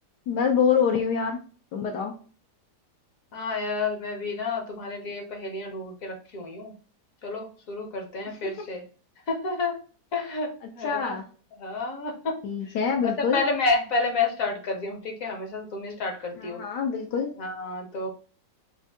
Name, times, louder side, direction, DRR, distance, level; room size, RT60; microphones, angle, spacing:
voice 1, 0.3-1.4 1.7-2.1 8.3-8.5 10.8-11.2 12.4-13.4 16.4-17.3, left 6 dB, 80° left, 1 dB, 1.3 m, -25 dB
voice 2, 3.3-6.7 7.2-8.8 9.3-9.8 10.1-10.5 10.7-11.2 11.6-12.4 13.0-16.6 17.4-18.1, left 3 dB, 60° left, 2 dB, 1.2 m, -30 dB
4.0 x 2.6 x 3.5 m, 0.39 s
omnidirectional pair, 1.8 m